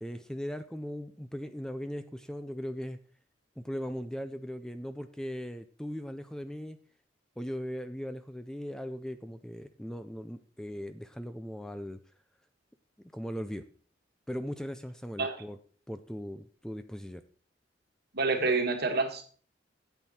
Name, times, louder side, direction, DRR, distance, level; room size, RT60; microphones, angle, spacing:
voice 1, 0.0-3.0 3.6-6.8 7.4-12.0 13.1-13.6 14.3-15.6 15.9-17.2, equal, 5° left, 10 dB, 0.4 m, -38 dB
voice 2, 18.1-19.2, right 3 dB, 60° right, 5 dB, 1.6 m, -27 dB
9.1 x 8.1 x 4.3 m, 0.41 s
head